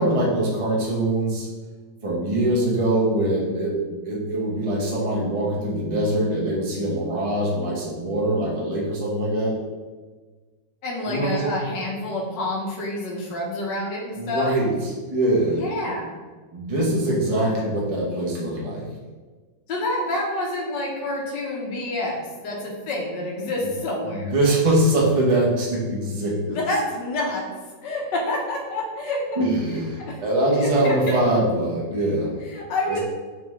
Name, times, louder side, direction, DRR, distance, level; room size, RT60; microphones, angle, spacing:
voice 1, 0.0-1.5 2.0-9.5 11.1-11.6 14.1-15.6 16.5-18.8 24.0-26.6 29.4-32.3 32.9-33.0, right 1 dB, 40° right, -4 dB, 0.4 m, -23 dB
voice 2, 10.8-14.5 15.6-16.2 19.7-24.4 26.5-27.5 27.8-29.3 30.0-30.2 30.6-31.2 32.4-33.0, left 2 dB, 75° left, -1 dB, 1.5 m, -28 dB
3.8 x 3.5 x 3.1 m, 1.4 s
omnidirectional pair, 2.0 m